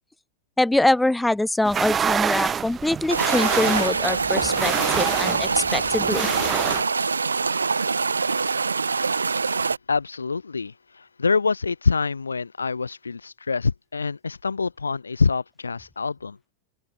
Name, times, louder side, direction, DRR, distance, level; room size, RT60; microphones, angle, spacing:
voice 1, 0.6-6.3, left 1 dB, 5° left, 2.3 m, -23 dB
sound 1, 1.6-6.8, right 7 dB, 20° right, 0.7 m, -27 dB
sound 2, 3.1-9.8, right 4 dB, 75° right, 2.3 m, -24 dB
voice 2, 9.9-16.4, left 4 dB, 75° left, 0.7 m, -25 dB
open air
figure-of-eight pair, 90°, 0 cm